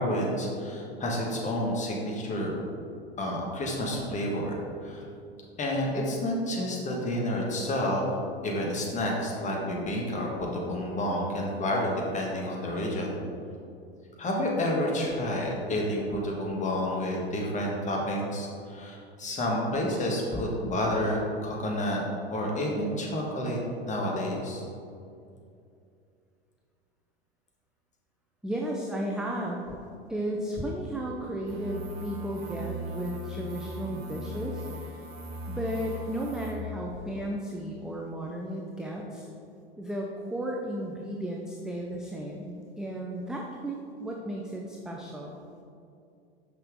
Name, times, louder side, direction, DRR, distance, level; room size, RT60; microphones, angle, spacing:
voice 1, 0.0-2.5 3.2-5.0 5.6-8.1 8.4-13.2 14.2-22.0 22.3-23.6 23.9-24.6, left 1 dB, 25° left, -2 dB, 1.4 m, -29 dB
voice 2, 28.4-29.6 30.1-34.7 35.5-39.3 39.8-45.4, right 1 dB, ahead, -1 dB, 0.4 m, -34 dB
sound 1, 31.5-36.5, equal, 75° right, 1.5 m, -39 dB
5.8 x 5.7 x 3.5 m, 2.5 s
figure-of-eight pair, 85°, 31 cm